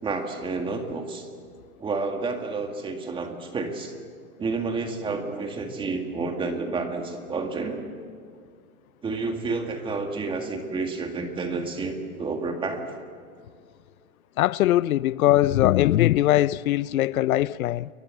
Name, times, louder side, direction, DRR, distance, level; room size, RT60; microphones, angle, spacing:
voice 1, 0.0-1.3 1.8-3.9 4.4-7.9 9.0-12.9, right 3 dB, 10° right, 2.0 m, -30 dB
voice 2, 14.4-17.9, left 14 dB, 80° left, 0.6 m, -21 dB
28.5 x 22.5 x 7.7 m
hypercardioid pair, 155°, 42 cm